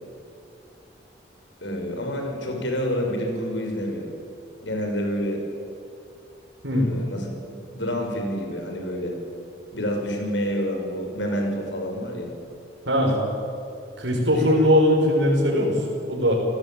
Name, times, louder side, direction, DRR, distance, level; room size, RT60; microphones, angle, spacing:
voice 1, 1.6-4.1 4.6-5.4 6.7-9.2 9.7-12.4 14.3-14.5, equal, 90° left, 3 dB, 6.3 m, -28 dB
voice 2, 12.9-13.2 14.0-15.8 16.1-16.4, equal, 85° right, -2 dB, 5.4 m, -20 dB
29.5 x 18.0 x 9.1 m, 2.6 s
head